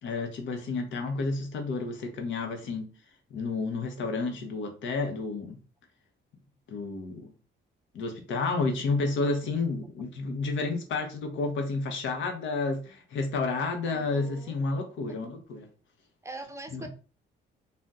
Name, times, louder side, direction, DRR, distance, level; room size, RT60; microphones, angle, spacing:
voice 1, 0.0-2.9 3.3-5.6 6.7-7.3 7.9-15.7 16.7-16.9, left 3 dB, 70° left, 5 dB, 0.8 m, -31 dB
voice 2, 13.9-14.6 15.1-15.2 15.6-15.7 16.2-16.9, right 2 dB, 15° right, 6 dB, 0.5 m, -42 dB
2.6 x 2.1 x 3.4 m, 0.37 s
cardioid pair, 90°, 20 cm